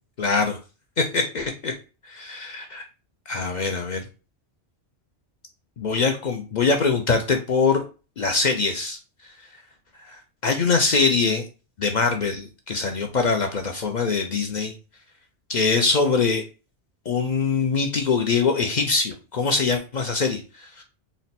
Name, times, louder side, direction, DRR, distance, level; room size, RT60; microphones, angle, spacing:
voice 1, 0.2-0.6 1.0-1.7 2.3-2.8 3.3-4.0 5.8-7.8 8.2-9.0 10.0-11.4 11.8-14.7 15.5-16.4 17.1-20.8, left 4 dB, 60° left, 4 dB, 0.4 m, -23 dB
4.1 x 2.1 x 4.0 m, 0.32 s
omnidirectional pair, 1.3 m